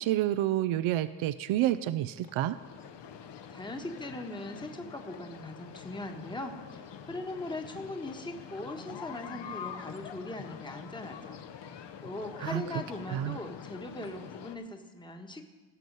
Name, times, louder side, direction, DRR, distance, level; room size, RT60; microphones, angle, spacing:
voice 1, 0.0-2.6 12.4-12.6 13.1-13.4, right 13 dB, 75° right, 13 dB, 0.5 m, -29 dB
sound 1, 1.6-1.8 2.2-2.4 2.8-3.0 3.4-3.6 4.0-4.2 4.5-4.7 5.1-5.3 5.7-5.9 6.3-6.5 6.9-7.0 7.5-7.8 8.1-8.3 8.6-8.8 9.2-9.4 9.9-10.0 10.4-10.6 11.0-11.1 11.6-11.7 12.2-12.4 12.8-12.9 13.4-13.5, left 4 dB, 40° left, 1.6 m, -55 dB
sound 2, 2.4-14.6, left 7 dB, 60° left, 0.9 m, -45 dB
voice 2, 3.5-11.4 11.7-15.5, left 2 dB, 10° left, 4 dB, 1.2 m, -40 dB
17.0 x 6.1 x 5.3 m, 1.3 s
cardioid pair, 75°, 49 cm